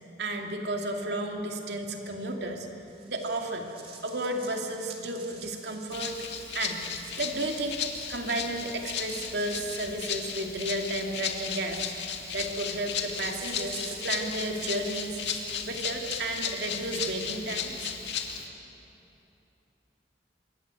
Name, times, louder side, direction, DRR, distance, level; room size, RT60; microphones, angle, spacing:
voice 1, 0.2-3.7 4.0-6.2 6.5-6.8 7.2-7.8 8.1-11.8 12.3-15.2 15.6-17.9, right 1 dB, 70° right, 2 dB, 2.4 m, -33 dB
sound 1, 2.9-17.1, right 5 dB, 35° right, 2.9 m, -49 dB
Rattle (instrument), 5.9-18.5, left 7 dB, 80° left, 2.3 m, -35 dB
25.5 x 22.5 x 9.1 m, 2.9 s
head